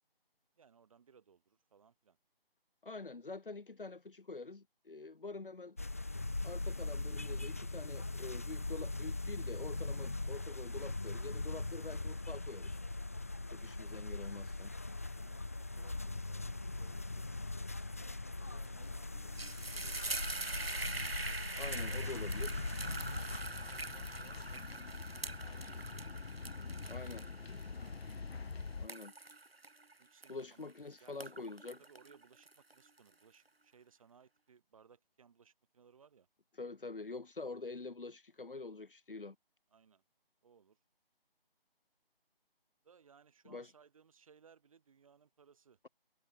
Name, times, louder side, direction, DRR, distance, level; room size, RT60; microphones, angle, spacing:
voice 1, 0.6-2.2 15.0-15.5 15.8-17.9 18.4-20.3 20.6-21.0 21.8-22.1 22.8-26.1 30.0-30.7 31.0-31.4 31.8-36.3 39.7-40.0 40.4-40.8 42.8-45.8, right 6 dB, 35° right, 5.7 m, -64 dB
voice 2, 2.8-5.8 6.4-12.8 13.5-14.7 21.6-22.5 26.9-27.3 28.8-29.1 30.3-31.8 36.6-39.3 43.4-43.7, left 3 dB, 60° left, 4.9 m, -46 dB
sound 1, 5.8-23.4, left 2 dB, 15° left, 0.6 m, -40 dB
sound 2, 18.6-18.9 19.2-30.7 31.1-33.0, right 3 dB, 80° right, 2.1 m, -44 dB
sound 3, 22.0-28.9, left 4 dB, 90° left, 0.8 m, -45 dB
figure-of-eight pair, 155°, 30 cm